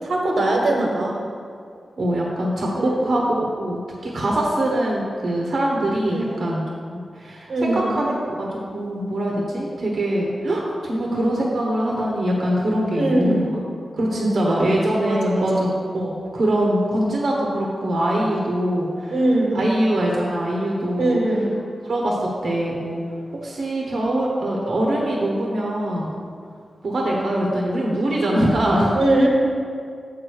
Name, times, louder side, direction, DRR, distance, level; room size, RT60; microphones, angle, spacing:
voice 1, 0.0-1.2 2.7-3.0 6.1-6.3 7.5-7.9 12.9-13.5 14.1-14.7 15.0-15.6 19.1-19.6 21.0-21.5 28.9-29.3, right 1 dB, 90° right, -2 dB, 1.5 m, -21 dB
voice 2, 2.0-6.6 6.9-13.5 13.9-19.1 19.5-21.2 21.8-23.0 23.4-26.1 26.8-28.9, right 1 dB, 65° right, -2 dB, 1.1 m, -23 dB
7.5 x 4.7 x 6.3 m, 2.2 s
wide cardioid pair, 90°, 0 cm